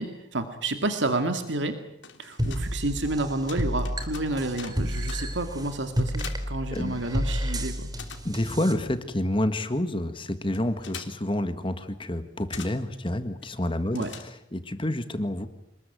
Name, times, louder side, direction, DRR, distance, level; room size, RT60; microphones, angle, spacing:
voice 1, 0.0-1.8 2.2-7.9 13.9-14.1, right 2 dB, 75° right, 7 dB, 2.3 m, -30 dB
sound 1, 1.8-7.4 7.6-14.7, left 7 dB, 70° left, 3.2 m, -46 dB
sound 2, 2.4-8.7, equal, 20° right, 2.8 m, -31 dB
voice 2, 6.7-7.0 8.2-15.5, left 1 dB, 25° left, 10 dB, 1.7 m, -29 dB
28.0 x 20.5 x 9.2 m, 0.79 s
head